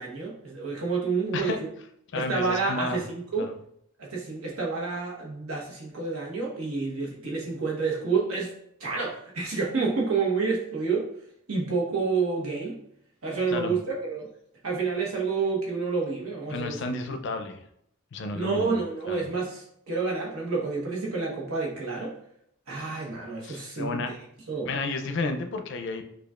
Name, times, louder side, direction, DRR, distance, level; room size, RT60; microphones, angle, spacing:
voice 1, 0.0-1.5 2.1-3.5 4.0-8.5 8.8-11.1 11.5-12.8 13.2-14.3 14.6-16.8 18.3-22.1 22.7-24.0 24.5-24.7, right 4 dB, 80° right, -3 dB, 1.1 m, -29 dB
voice 2, 2.1-3.0 3.4-3.5 13.5-13.7 16.5-17.6 18.1-18.8 19.1-19.3 23.4-24.1 24.7-26.0, left 3 dB, 55° left, 6 dB, 0.4 m, -32 dB
6.7 x 2.4 x 2.4 m, 0.73 s
head